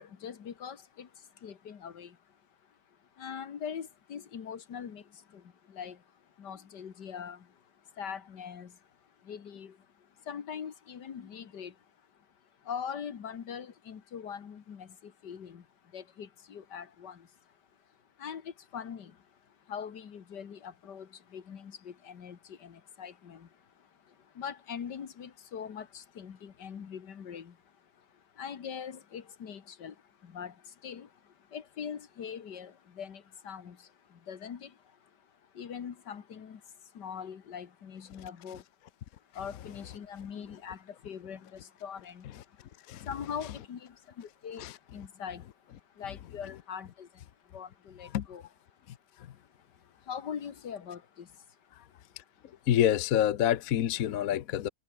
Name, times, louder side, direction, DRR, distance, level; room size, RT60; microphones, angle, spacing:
voice 1, 0.0-38.7 39.2-52.7, left 7 dB, 80° left, 2.2 m, -43 dB
voice 2, 52.7-54.7, left 11 dB, 60° left, 1.1 m, -27 dB
omnidirectional pair, 1.8 m